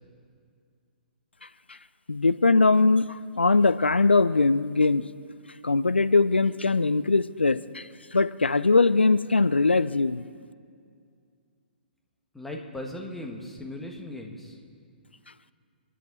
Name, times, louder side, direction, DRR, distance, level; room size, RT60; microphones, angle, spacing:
voice 1, 2.1-5.0 5.6-10.2, left 3 dB, 85° left, 15 dB, 0.5 m, -21 dB
voice 2, 12.3-14.6, left 1 dB, 5° left, 1 dB, 1.8 m, -38 dB
29.0 x 11.0 x 4.2 m, 2.3 s
figure-of-eight pair, 125°, 6 cm